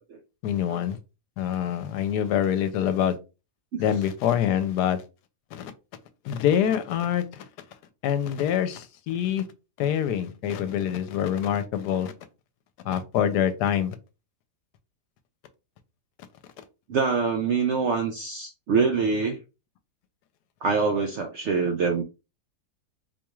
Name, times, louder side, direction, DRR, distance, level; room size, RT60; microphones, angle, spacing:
voice 1, 0.4-1.0 1.4-3.2 3.8-5.0 5.5-5.7 6.2-7.4 8.0-9.5 9.8-12.1 12.8-14.0, left 9 dB, 85° left, 1.2 m, -25 dB
voice 2, 16.9-19.4 20.6-22.0, right 5 dB, 70° right, 0.6 m, -25 dB
4.2 x 3.0 x 2.3 m
omnidirectional pair, 1.7 m